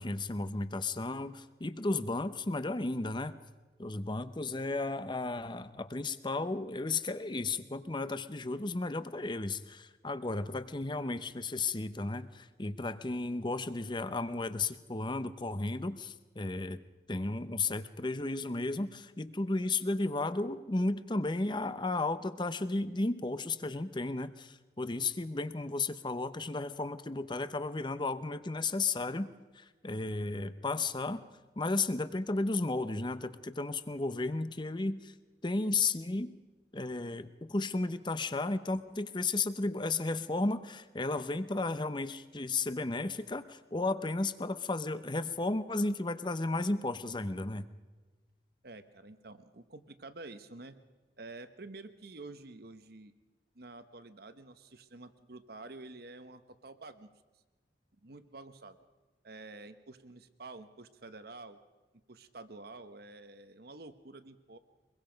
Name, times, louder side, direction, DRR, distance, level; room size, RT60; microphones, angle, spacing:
voice 1, 0.0-3.4 3.8-16.8 17.1-29.3 29.5-31.2 31.6-35.1 35.4-36.3 36.7-47.7, left 2 dB, 25° left, 13 dB, 0.8 m, -34 dB
voice 2, 48.6-50.8 51.2-53.1 53.5-57.1 57.9-58.8 59.2-61.6 62.1-64.6, right 2 dB, 60° right, 10 dB, 1.1 m, -49 dB
24.0 x 22.0 x 5.2 m, 1.3 s
head